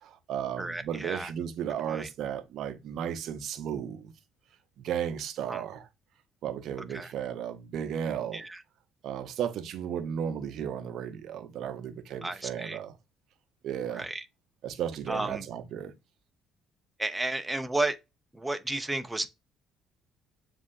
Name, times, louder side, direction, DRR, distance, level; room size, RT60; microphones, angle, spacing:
voice 1, 0.0-4.1 4.8-5.9 6.4-8.4 9.0-12.9 13.6-14.1 14.6-15.9, right 9 dB, 60° right, 0.8 m, -34 dB
voice 2, 0.6-1.3 1.9-2.1 5.5-5.6 6.9-7.1 8.3-8.6 12.2-12.8 13.9-14.2 15.1-15.5 17.0-18.0 18.3-19.3, right 2 dB, 15° right, 0.8 m, -32 dB
7.2 x 2.8 x 2.6 m
hypercardioid pair, 55°, 0 cm